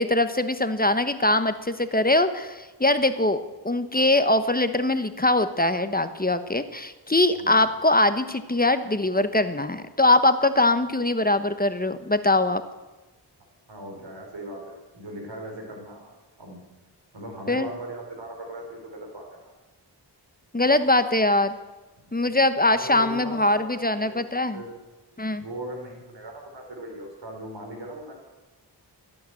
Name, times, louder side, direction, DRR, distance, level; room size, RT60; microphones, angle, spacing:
voice 1, 0.0-12.6 17.5-17.7 20.5-21.5 22.1-24.6 25.2-25.4, left 2 dB, 20° left, 10 dB, 1.0 m, -22 dB
voice 2, 13.7-16.6 17.1-19.5 22.0-22.5 22.7-24.2 24.5-24.7 25.3-28.1, right 1 dB, 85° right, 1 dB, 4.1 m, -39 dB
15.5 x 8.9 x 7.8 m, 1.1 s
cardioid pair, 40°, 42 cm